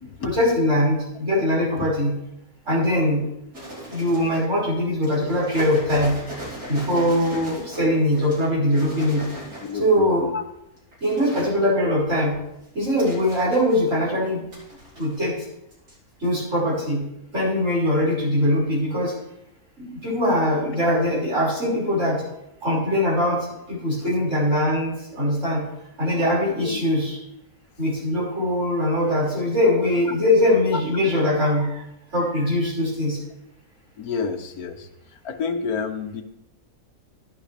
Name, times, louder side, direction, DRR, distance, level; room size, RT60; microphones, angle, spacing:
voice 1, 0.2-2.2 2.7-3.2 3.8-6.2 6.7-9.3 9.7-10.3 11.0-12.4 12.7-14.5 15.0-15.4 16.2-17.1 17.3-19.1 19.8-22.2 22.6-25.6 26.0-27.2 27.8-31.8 32.1-33.2, left 1 dB, 55° right, -6 dB, 6.3 m, -22 dB
sound 1, 3.5-4.5 5.0-10.0 10.7-11.6 12.0-14.1 14.5-15.4 15.7-15.9 16.2-16.3, right 1 dB, 75° right, 4.4 m, -38 dB
voice 2, 9.6-10.4 26.6-26.9 34.0-34.9 35.2-36.2, left 5 dB, 90° left, 7 dB, 1.5 m, -29 dB
14.0 x 11.5 x 3.5 m, 0.83 s
omnidirectional pair, 1.5 m